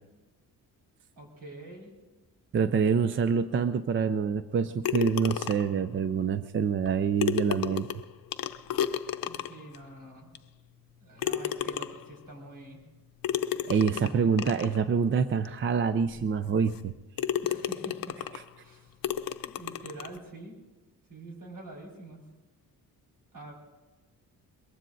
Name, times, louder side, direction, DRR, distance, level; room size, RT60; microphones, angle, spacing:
voice 1, 1.2-1.9 9.2-10.3 11.0-12.8 13.9-14.2 17.4-18.2 18.6-18.9 19.4-20.6 21.1-22.2 23.3-23.5, right 2 dB, 60° right, -1 dB, 5.0 m, -46 dB
voice 2, 2.5-7.9 13.7-16.9 18.3-18.4, right 6 dB, 35° right, 11 dB, 0.4 m, -26 dB
sound 1, 4.8-5.8 6.9-7.0 7.2-9.8 10.4-10.5 11.2-12.2 13.2-14.8 15.5-15.6 16.1-16.2 16.7-16.9 17.2-18.5 19.0-20.2, left 10 dB, 65° left, 0.7 m, -32 dB
22.5 x 22.0 x 2.6 m, 1.2 s
wide cardioid pair, 165°, 37 cm